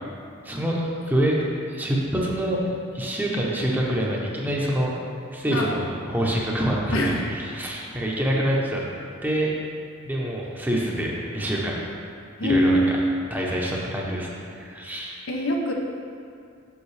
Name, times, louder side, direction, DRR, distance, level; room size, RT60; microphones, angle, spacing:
voice 1, 0.4-0.8 1.1-1.4 1.7-4.9 5.3-8.8 9.2-9.5 10.0-11.8 12.4-12.8 13.3-15.2, right 1 dB, 10° right, -3 dB, 0.8 m, -26 dB
voice 2, 6.9-7.2 12.4-13.3 15.3-15.7, equal, 85° left, 1 dB, 0.8 m, -23 dB
7.1 x 5.9 x 3.3 m, 2.4 s
head